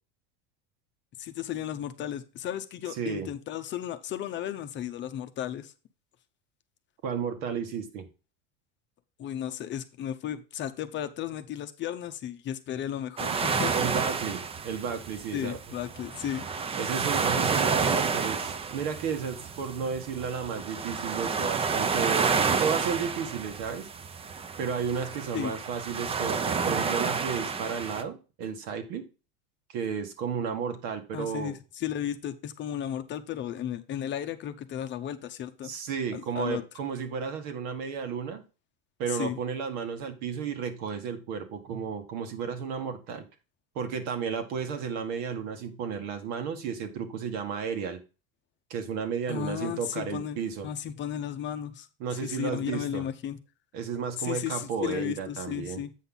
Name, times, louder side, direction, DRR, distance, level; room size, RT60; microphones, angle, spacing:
voice 1, 1.2-5.7 9.2-13.8 15.3-16.4 25.3-25.5 31.1-35.7 36.1-36.6 39.1-39.4 49.3-50.4 50.6-51.9 52.2-53.4 54.2-55.9, left 10 dB, 35° left, 9 dB, 0.7 m, -34 dB
voice 2, 3.0-3.3 7.0-8.1 13.7-15.6 16.8-22.3 22.6-23.9 24.6-29.0 29.7-31.5 35.6-38.4 39.0-43.2 43.8-48.0 48.7-50.7 52.0-53.0 53.7-55.8, right 6 dB, 70° right, 7 dB, 1.8 m, -33 dB
sound 1, 13.2-28.0, right 5 dB, 20° right, 0.5 m, -30 dB
8.3 x 5.5 x 3.9 m, 0.32 s
supercardioid pair, 135°, 32 cm